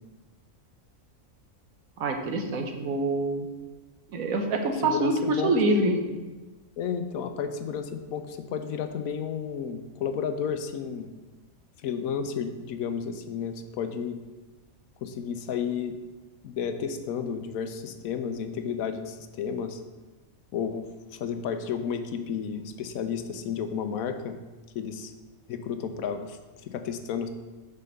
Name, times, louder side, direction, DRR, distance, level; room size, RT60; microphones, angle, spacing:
voice 1, 2.0-3.5 4.1-6.0, right 2 dB, 80° right, 4 dB, 1.4 m, -26 dB
voice 2, 4.8-6.2 6.8-11.1 11.8-14.2 15.0-16.0 16.4-19.8 20.5-24.4 24.7-25.1 25.5-27.3, left 7 dB, 80° left, 8 dB, 1.1 m, -32 dB
5.6 x 5.3 x 6.6 m, 1.2 s
omnidirectional pair, 1.5 m